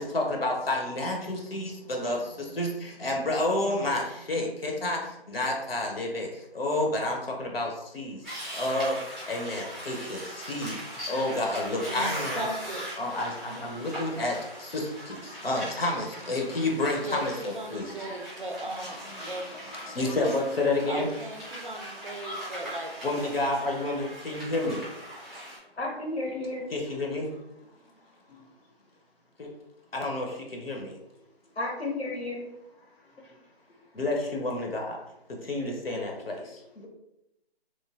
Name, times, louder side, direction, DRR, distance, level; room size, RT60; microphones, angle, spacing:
voice 1, 0.0-2.2 2.6-5.0 5.3-6.3 6.5-8.2 8.6-8.9 9.3-10.2 10.5-10.7 11.1-12.5 13.0-14.3 14.6-15.1 15.4-17.9 19.9-21.1 23.0-24.8 26.7-27.3 29.9-30.3 30.5-30.9 34.0-35.0 35.5-36.3, left 2 dB, 65° left, 0 dB, 0.6 m, -29 dB
sound 1, 8.2-25.6, equal, ahead, 0.5 m, -40 dB
voice 2, 11.9-12.9 17.0-19.6 19.9-20.1 20.9-23.3, right 1 dB, 55° right, 2 dB, 0.5 m, -37 dB
voice 3, 25.8-26.6 28.3-28.4 31.6-32.4 36.8-36.9, left 2 dB, 90° left, 0 dB, 0.9 m, -32 dB
3.0 x 2.2 x 2.3 m, 0.87 s
figure-of-eight pair, 175°, 32 cm